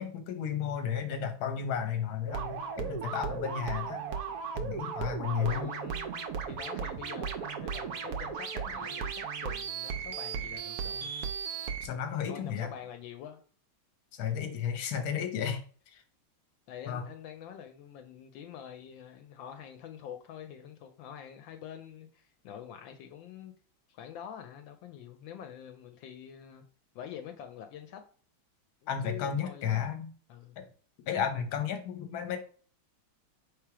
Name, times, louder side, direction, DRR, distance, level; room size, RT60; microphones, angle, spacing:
voice 1, 0.0-4.0 4.5-5.7 11.8-12.7 14.1-16.0 16.9-17.0 28.9-30.1 30.6-30.7 31.1-32.4, left 8 dB, 60° left, 7 dB, 1.1 m, -33 dB
sound 1, 2.3-11.9, right 6 dB, 80° right, 0.8 m, -36 dB
voice 2, 5.3-11.1 12.3-13.4 16.7-23.5 23.9-26.7 26.9-28.0 28.8-29.9 30.3-30.6, left 9 dB, 80° left, 7 dB, 1.3 m, -46 dB
3.4 x 3.1 x 4.6 m, 0.42 s
omnidirectional pair, 2.1 m